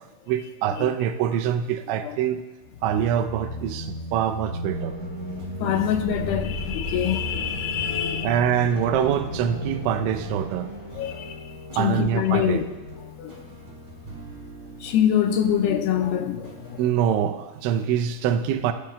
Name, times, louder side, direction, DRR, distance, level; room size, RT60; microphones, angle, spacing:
voice 1, 0.3-2.4 2.8-4.9 8.2-10.7 11.8-12.6 16.8-18.7, right 9 dB, 85° right, 3.1 m, -24 dB
sound 1, 2.6-11.4, equal, 35° left, 1.4 m, -34 dB
sound 2, 4.7-16.8, equal, 40° right, 5.3 m, -42 dB
voice 2, 5.6-8.3 10.9-11.4 11.7-12.6 13.2-13.3 14.8-16.8, left 10 dB, 85° left, 2.3 m, -24 dB
29.5 x 18.0 x 2.3 m
omnidirectional pair, 5.3 m